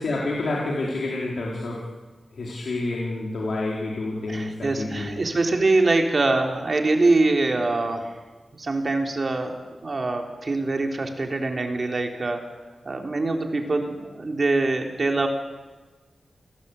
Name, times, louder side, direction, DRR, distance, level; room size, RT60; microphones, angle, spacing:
voice 1, 0.0-1.9 2.3-5.2, left 2 dB, 65° left, -3 dB, 4.8 m, -28 dB
voice 2, 4.3-8.1 8.6-12.4 12.8-15.3, right 2 dB, 40° right, 3 dB, 3.7 m, -24 dB
29.5 x 20.0 x 8.5 m, 1.3 s
wide cardioid pair, 115°, 0 cm